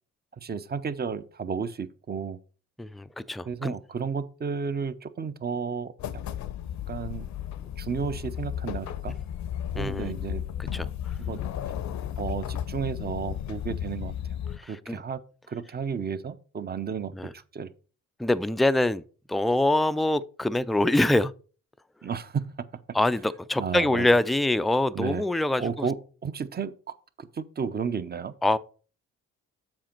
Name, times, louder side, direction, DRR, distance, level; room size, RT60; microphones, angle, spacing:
voice 1, 0.4-2.4 3.5-5.9 6.9-7.3 7.8-9.1 9.7-10.4 10.7-10.9 11.2-11.4 12.2-14.1 14.7-15.2 15.5-17.7 22.0-22.4 23.6-24.1 24.9-25.2 25.6-26.0 26.2-28.3, right 6 dB, 35° right, 0.7 m, -32 dB
voice 2, 2.8-3.7 9.7-10.1 10.7-10.9 14.6-15.0 17.1-17.3 18.2-19.0 19.3-21.3 22.9-25.9 28.4-28.6, left 1 dB, ahead, 0.3 m, -24 dB
sound 1, 6.0-14.6, left 10 dB, 70° left, 0.7 m, -34 dB
7.5 x 5.0 x 4.4 m
cardioid pair, 90°, 30 cm